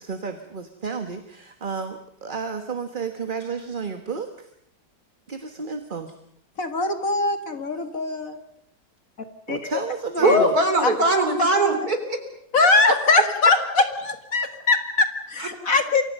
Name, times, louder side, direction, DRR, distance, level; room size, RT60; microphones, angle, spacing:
voice 1, 0.0-4.5 5.3-6.1 9.5-10.6, right 5 dB, 30° right, 7 dB, 1.5 m, -31 dB
voice 2, 6.6-8.4 9.5-9.7 10.2-10.4 12.5-16.0, left 3 dB, 45° left, 8 dB, 2.3 m, -22 dB
voice 3, 10.2-12.2 15.4-15.5, right 1 dB, 50° right, 7 dB, 4.3 m, -20 dB
29.0 x 24.5 x 5.5 m, 0.70 s
omnidirectional pair, 2.0 m